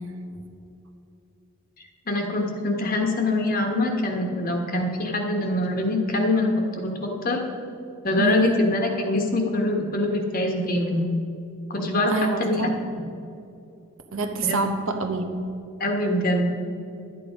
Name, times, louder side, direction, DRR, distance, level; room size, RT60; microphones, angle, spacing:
voice 1, 2.1-7.4 8.0-11.1 11.7-12.7 14.4-14.6 15.8-16.6, left 1 dB, 40° left, 2 dB, 1.3 m, -24 dB
voice 2, 8.2-8.6 12.1-12.8 14.1-15.3, right 3 dB, 65° right, 6 dB, 1.0 m, -26 dB
12.0 x 8.9 x 5.0 m, 2.7 s
head